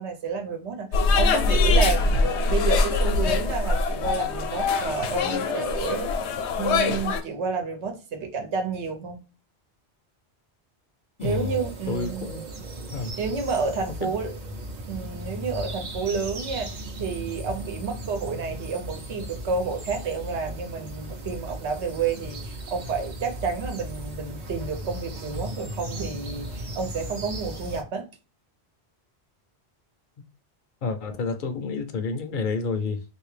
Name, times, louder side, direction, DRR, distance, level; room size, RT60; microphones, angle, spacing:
voice 1, 0.0-9.2 11.2-12.3 13.2-14.3 14.9-28.1, right 5 dB, 90° right, 1.1 m, -30 dB
sound 1, 0.9-7.2, left 3 dB, 85° left, 0.9 m, -23 dB
voice 2, 11.2-12.4 12.9-13.1 14.0-14.1 30.8-33.0, left 4 dB, 55° left, 0.7 m, -29 dB
sound 2, 11.2-27.8, right 1 dB, 50° right, 0.7 m, -36 dB
3.3 x 2.5 x 3.2 m
omnidirectional pair, 1.1 m